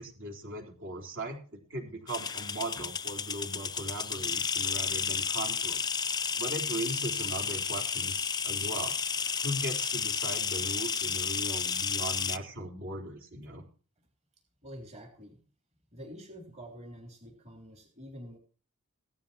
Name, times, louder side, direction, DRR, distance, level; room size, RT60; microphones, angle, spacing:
voice 1, 0.0-5.8 6.4-9.0 9.4-13.6, right 1 dB, 60° right, 2 dB, 4.0 m, -38 dB
sound 1, 2.1-12.4, left 6 dB, 20° left, 0.6 m, -32 dB
voice 2, 14.6-15.4 15.9-18.4, equal, 30° right, 2 dB, 3.6 m, -47 dB
16.5 x 12.5 x 2.9 m, 0.38 s
head